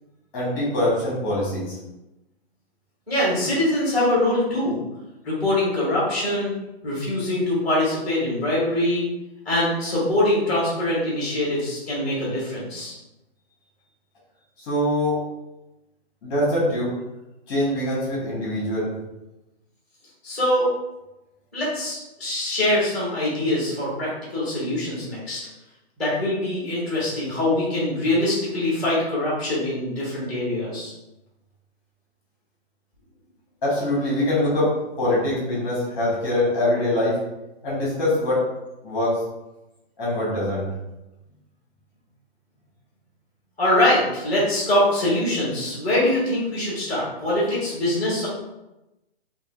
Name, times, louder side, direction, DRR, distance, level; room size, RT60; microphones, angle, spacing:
voice 1, 0.3-1.8 14.6-15.2 16.2-16.9 17.5-18.9 33.6-37.2 37.6-38.5 38.8-39.2 40.0-40.7, left 1 dB, 20° left, -6 dB, 1.5 m, -23 dB
voice 2, 3.1-4.8 5.2-6.5 6.8-9.1 9.4-12.9 20.2-20.7 21.5-25.4 26.0-30.9 43.6-48.3, left 1 dB, ahead, -7 dB, 1.2 m, -23 dB
5.0 x 2.8 x 2.6 m, 0.97 s
hypercardioid pair, 170°, 32 cm